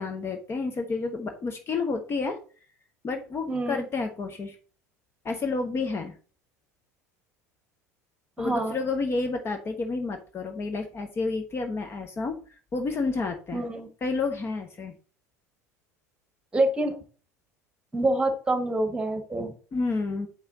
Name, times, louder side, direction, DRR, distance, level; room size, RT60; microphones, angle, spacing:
voice 1, 0.0-2.4 3.0-4.6 5.2-6.1 8.4-12.4 12.7-13.6 14.0-14.9 19.7-20.3, left 3 dB, 30° left, 5 dB, 1.1 m, -30 dB
voice 2, 3.5-3.9 8.4-8.8 13.5-13.9 16.5-17.0 17.9-19.5, right 2 dB, 10° right, 7 dB, 1.7 m, -26 dB
7.5 x 5.4 x 3.9 m, 0.38 s
figure-of-eight pair, 70°, 9 cm